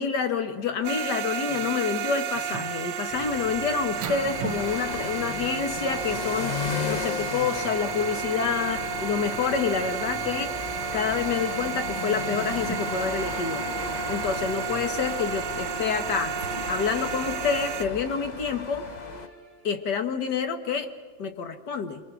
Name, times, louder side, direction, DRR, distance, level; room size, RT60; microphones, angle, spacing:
voice 1, 0.0-10.5 10.9-13.6 14.1-16.3 16.7-18.9 19.6-20.9 21.2-22.0, left 6 dB, 75° left, 7 dB, 1.9 m, -28 dB
sound 1, 0.8-17.8, right 8 dB, 80° right, 1.5 m, -32 dB
sound 2, 3.1-19.3, left 5 dB, 50° left, 0.5 m, -36 dB
sound 3, 5.5-19.8, equal, 25° left, 6.9 m, -45 dB
27.5 x 22.0 x 6.2 m, 1.4 s
omnidirectional pair, 1.8 m